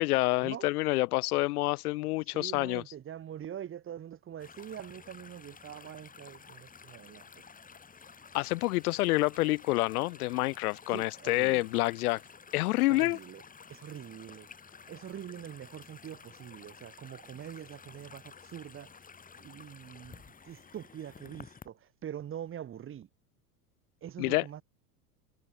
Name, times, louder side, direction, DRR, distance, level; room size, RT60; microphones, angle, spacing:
voice 1, 0.0-2.8 8.3-12.2 12.5-13.2 24.2-24.4, left 20 dB, 70° left, 0.8 m, -28 dB
voice 2, 2.2-7.4 9.3-9.4 10.9-11.7 12.9-13.4 13.7-19.1 19.4-23.1 24.0-24.6, right 10 dB, 25° right, 1.8 m, -44 dB
sound 1, 4.4-21.7, left 5 dB, 15° left, 3.6 m, -52 dB
hypercardioid pair, 110°, 46 cm